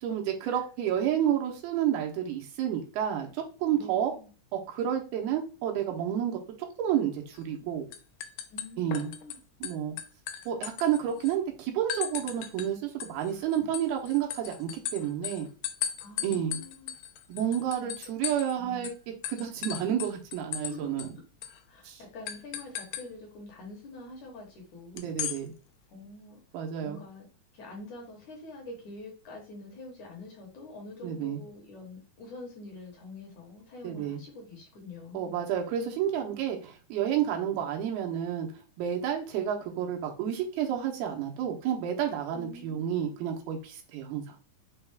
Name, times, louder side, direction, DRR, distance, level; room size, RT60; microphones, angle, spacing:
voice 1, 0.0-4.1 4.5-6.4 6.8-7.9 8.8-9.1 9.6-10.0 10.5-15.5 16.2-16.6 17.3-18.9 19.3-21.1 21.8-22.0 24.9-25.5 26.5-27.0 31.0-31.4 33.8-34.2 35.1-38.5 38.8-44.2, right 10 dB, 85° right, 1 dB, 2.8 m, -30 dB
voice 2, 3.8-4.3 8.5-9.4 16.0-16.9 17.8-17.9 18.5-18.9 20.7-21.1 21.7-25.1 25.9-26.4 26.8-27.3 27.5-35.4 42.3-43.1, left 2 dB, 65° left, 0 dB, 2.1 m, -46 dB
sound 1, 7.4-7.6 7.9-9.4 9.6-11.3 11.9-12.7 13.0-18.6 18.8-19.0 19.2-20.7 21.0-21.1 21.4-21.6 22.3-23.1 25.0-25.4, left 10 dB, 80° left, 2.0 m, -36 dB
6.3 x 2.3 x 3.4 m, 0.36 s
omnidirectional pair, 4.3 m